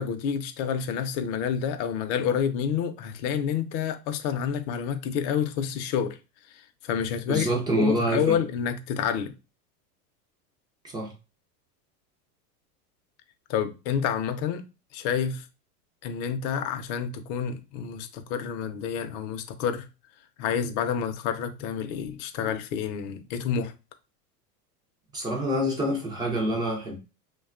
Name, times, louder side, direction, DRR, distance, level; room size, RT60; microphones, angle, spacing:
voice 1, 0.0-6.2 6.5-9.3 13.5-14.6 14.9-15.5 16.0-19.9 20.4-23.7, left 8 dB, 50° left, 0.5 m, -29 dB
voice 2, 7.3-8.4 10.8-11.1 25.1-26.9, right 1 dB, 10° right, 0.3 m, -26 dB
2.6 x 2.2 x 2.4 m
supercardioid pair, 120°, 47 cm